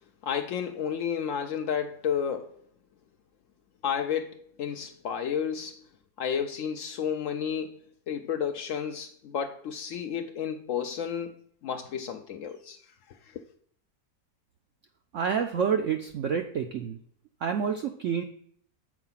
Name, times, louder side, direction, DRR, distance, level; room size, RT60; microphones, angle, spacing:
voice 1, 0.2-2.6 3.8-5.8 6.2-7.8 8.1-11.4 11.6-12.8 13.1-13.3, left 8 dB, 80° left, 0.7 m, -31 dB
voice 2, 15.1-17.0 17.4-18.2, right 7 dB, 75° right, 0.7 m, -28 dB
7.3 x 4.6 x 5.6 m
omnidirectional pair, 2.0 m